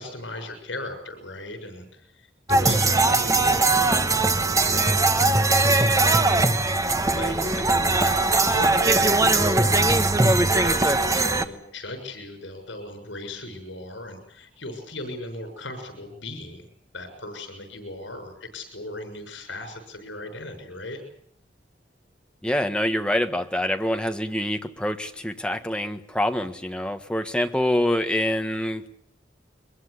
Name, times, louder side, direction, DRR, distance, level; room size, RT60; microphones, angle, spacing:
voice 1, 0.0-9.8 10.3-16.7 16.9-21.0, left 1 dB, 80° left, 7 dB, 6.6 m, -37 dB
sound 1, 2.5-11.4, right 2 dB, 15° right, 1.2 m, -20 dB
voice 2, 22.4-28.9, left 1 dB, 5° left, 6 dB, 1.4 m, -25 dB
23.0 x 21.5 x 8.3 m, 0.66 s
head